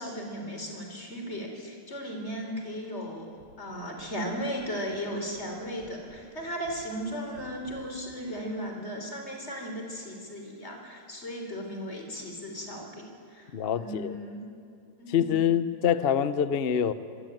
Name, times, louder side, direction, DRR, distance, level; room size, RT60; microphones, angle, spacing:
voice 1, 0.0-3.3 3.6-14.4 15.0-15.4, equal, 30° left, 3 dB, 4.2 m, -36 dB
sound 1, 3.0-8.2, equal, 45° right, 6.8 m, -56 dB
voice 2, 13.5-14.2 15.1-16.9, left 8 dB, 70° left, 12 dB, 0.5 m, -25 dB
24.5 x 23.5 x 9.1 m, 2.4 s
omnidirectional pair, 2.4 m